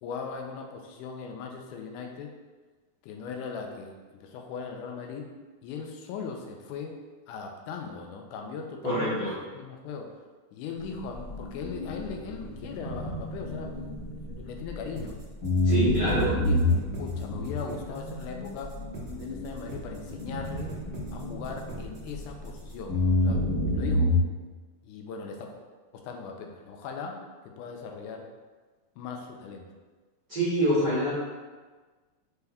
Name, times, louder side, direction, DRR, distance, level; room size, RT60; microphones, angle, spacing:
voice 1, 0.0-2.3 3.0-5.3 5.6-7.0 7.3-9.3 9.5-10.2 10.5-13.8 14.1-15.2 15.8-18.7 19.1-20.7 21.1-24.1 24.8-25.5 25.9-28.3 29.0-29.7, left 5 dB, 90° left, 2 dB, 2.1 m, -39 dB
voice 2, 8.8-9.3 15.6-16.3 30.3-31.1, right 1 dB, 55° right, -13 dB, 1.1 m, -25 dB
sound 1, 10.8-15.0 15.4-22.5 22.9-24.2, left 1 dB, 55° left, 1.1 m, -29 dB
sound 2, 14.9-22.9, right 2 dB, 85° right, 1.0 m, -43 dB
5.3 x 3.4 x 2.3 m, 1.3 s
omnidirectional pair, 3.5 m